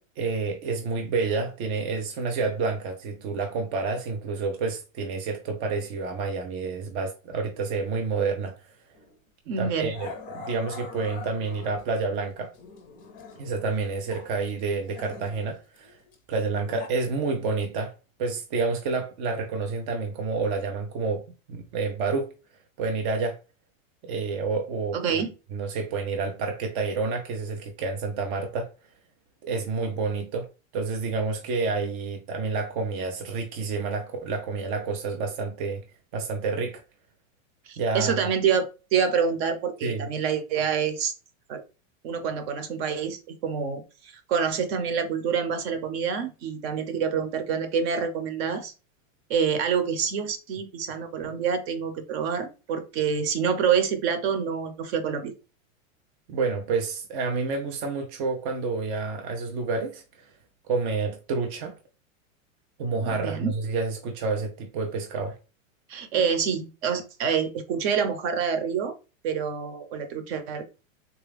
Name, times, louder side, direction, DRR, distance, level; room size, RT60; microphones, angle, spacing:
voice 1, 0.2-8.6 9.6-12.5 13.4-16.0 16.3-17.9 18.2-21.2 21.5-22.3 22.8-23.4 24.0-25.2 25.5-28.7 29.4-30.5 30.7-35.8 36.1-36.8 37.8-38.1 39.8-40.1 56.3-60.3 60.7-61.7 62.8-65.3, right 4 dB, 30° right, 0.4 m, -29 dB
Growling, 9.0-9.2 9.9-12.0 12.5-14.3 14.6-16.9, left 4 dB, 20° left, 0.5 m, -43 dB
voice 2, 9.5-9.9 24.9-25.3 37.7-41.1 41.5-41.6 42.0-48.7 49.3-55.3 63.1-63.5 65.9-68.9 69.2-70.6, right 6 dB, 50° right, 0.9 m, -27 dB
3.5 x 2.3 x 3.3 m
supercardioid pair, 140°, 41 cm